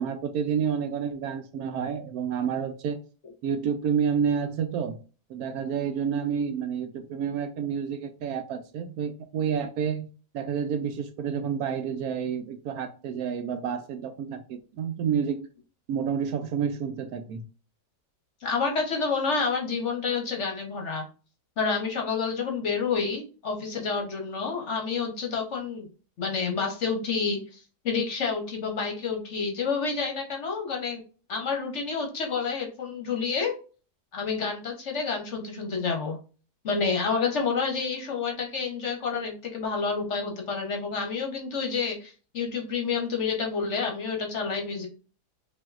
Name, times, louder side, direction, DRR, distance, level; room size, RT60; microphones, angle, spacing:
voice 1, 0.0-3.0 3.4-5.0 5.3-10.1 10.3-15.5 15.9-17.4, right 7 dB, 70° right, 1.0 m, -29 dB
voice 2, 18.4-21.0 21.6-25.9 26.2-27.6 27.8-31.0 31.3-33.5 34.1-36.2 36.6-44.9, left 5 dB, 50° left, 1.0 m, -29 dB
5.5 x 2.6 x 2.4 m
omnidirectional pair, 1.7 m